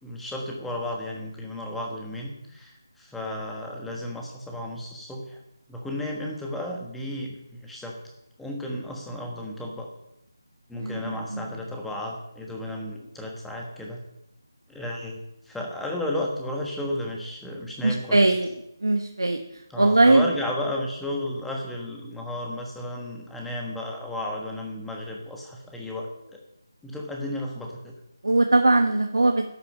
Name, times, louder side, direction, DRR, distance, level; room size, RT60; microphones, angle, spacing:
voice 1, 0.0-5.4 5.7-8.0 8.4-9.9 10.7-14.0 14.7-15.2 15.4-18.2 19.7-26.4 26.8-27.9, left 1 dB, 5° left, -1 dB, 1.3 m, -33 dB
voice 2, 10.7-11.4 17.8-18.5 18.8-20.3 28.2-29.4, right 2 dB, 75° right, 5 dB, 1.0 m, -21 dB
11.5 x 8.4 x 5.6 m, 0.85 s
figure-of-eight pair, 160°, 2 cm